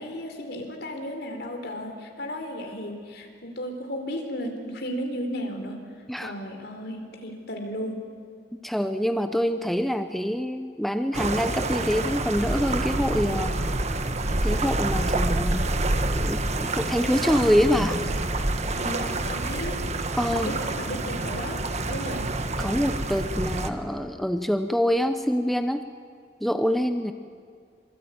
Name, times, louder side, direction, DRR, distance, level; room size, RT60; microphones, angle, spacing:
voice 1, 0.0-5.8 6.2-8.0 18.7-19.8 20.3-22.3, equal, 60° left, 4 dB, 4.2 m, -34 dB
voice 2, 8.6-13.7 14.4-15.7 16.2-18.0 20.2-20.5 22.6-25.8 26.4-27.1, equal, ahead, 8 dB, 0.7 m, -25 dB
sound 1, 11.1-23.7, right 2 dB, 40° right, 1.4 m, -27 dB
25.5 x 24.0 x 9.5 m, 2.1 s
head